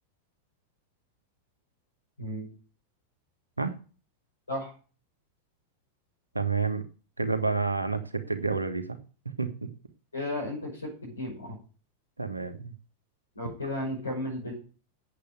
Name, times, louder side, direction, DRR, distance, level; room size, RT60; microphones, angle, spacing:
voice 1, 2.2-2.5 4.5-4.7 10.1-11.6 13.4-14.5, left 1 dB, 80° left, -3 dB, 6.0 m, -34 dB
voice 2, 6.3-6.8 7.2-9.0 9.4-9.5 12.2-12.7, right 4 dB, 80° right, 8 dB, 1.6 m, -29 dB
8.6 x 8.2 x 9.3 m, 0.37 s
figure-of-eight pair, 90°, 0 cm